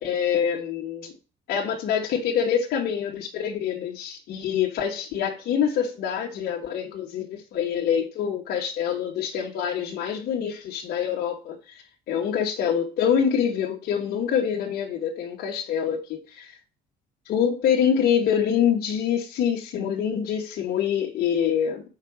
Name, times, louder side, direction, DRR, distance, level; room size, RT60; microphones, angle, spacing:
voice 1, 0.0-1.1 1.5-11.8 12.1-16.2 17.3-21.8, left 8 dB, 70° left, 1.5 m, -25 dB
6.5 x 4.9 x 6.4 m
cardioid pair, 110°, 17 cm